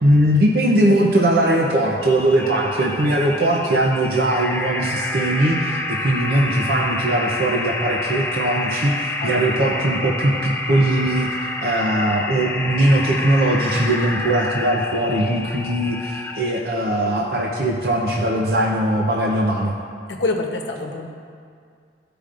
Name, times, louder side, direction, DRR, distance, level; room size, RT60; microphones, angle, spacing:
voice 1, 0.0-5.8 6.0-11.3 11.6-19.7, right 1 dB, 60° right, -1 dB, 0.7 m, -20 dB
sound 1, 2.0-16.6, left 2 dB, 10° left, 0.5 m, -28 dB
voice 2, 20.1-21.1, left 2 dB, 90° left, 2 dB, 0.9 m, -25 dB
14.5 x 5.0 x 2.5 m, 2.2 s
head